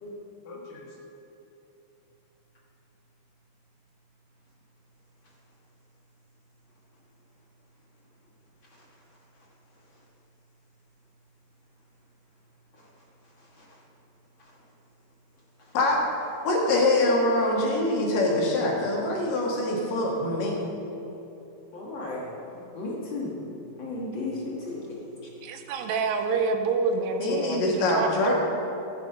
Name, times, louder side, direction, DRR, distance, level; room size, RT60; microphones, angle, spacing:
voice 1, 0.5-0.9 15.7-16.0 16.4-20.6 27.2-28.3, left 2 dB, 70° left, -2 dB, 3.5 m, -24 dB
voice 2, 12.7-13.8 14.4-14.5 15.6-15.7 21.7-23.4 23.8-25.3, left 2 dB, 45° left, -4 dB, 1.8 m, -36 dB
voice 3, 25.4-28.3, right 4 dB, 85° right, 6 dB, 2.6 m, -27 dB
15.0 x 9.7 x 5.4 m, 3.0 s
omnidirectional pair, 4.1 m